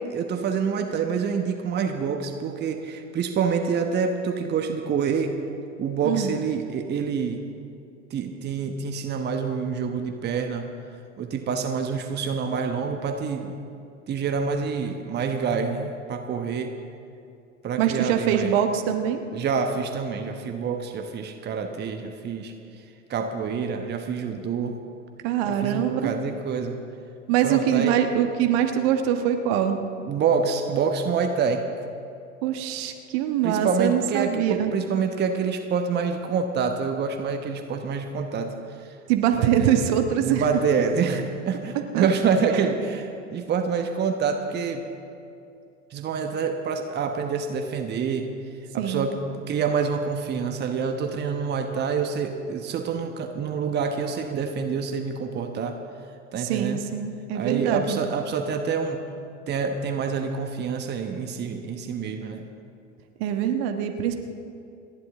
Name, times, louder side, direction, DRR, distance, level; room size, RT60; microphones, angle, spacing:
voice 1, 0.1-5.4 5.8-7.4 8.1-10.7 11.2-13.6 14.1-16.7 17.6-18.6 19.3-22.5 23.1-24.8 25.5-26.8 27.4-28.0 30.0-31.6 33.4-39.0 39.4-39.9 40.2-44.8 45.9-48.3 48.7-55.8 56.3-56.8 57.3-59.0 59.5-62.5, right 5 dB, 25° right, 5 dB, 1.2 m, -27 dB
voice 2, 6.0-6.3 17.8-19.2 25.2-26.1 27.3-29.8 32.4-34.7 39.1-40.4 41.9-42.1 48.8-49.1 56.4-58.0 63.2-64.2, right 9 dB, 50° right, 5 dB, 1.4 m, -23 dB
29.5 x 11.0 x 3.7 m, 2.6 s
figure-of-eight pair, 85°, 39 cm